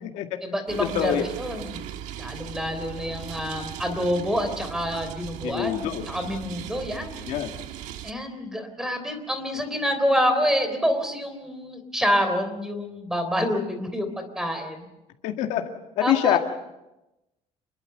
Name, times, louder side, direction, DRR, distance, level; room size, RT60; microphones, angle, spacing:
voice 1, 0.4-1.9 2.2-7.2 8.0-14.9 16.0-16.4, equal, 5° right, 8 dB, 3.5 m, -27 dB
sound 1, 0.7-8.1, right 11 dB, 85° right, 1.4 m, -38 dB
voice 2, 5.4-6.1 7.3-7.6 15.2-15.6 16.0-16.4, left 11 dB, 85° left, 3 dB, 2.0 m, -25 dB
27.0 x 21.5 x 6.7 m, 0.96 s
cardioid pair, 175°, 12 cm